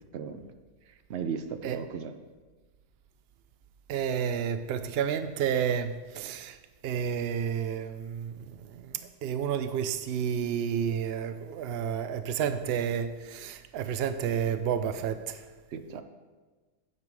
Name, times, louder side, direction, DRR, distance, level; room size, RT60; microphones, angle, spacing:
voice 1, 0.1-0.5 0.9-2.1 15.7-16.0, right 6 dB, 55° right, 0.8 m, -36 dB
voice 2, 3.9-6.6 6.8-15.5, right 8 dB, 85° right, 0.5 m, -31 dB
9.5 x 7.5 x 4.7 m
omnidirectional pair, 1.6 m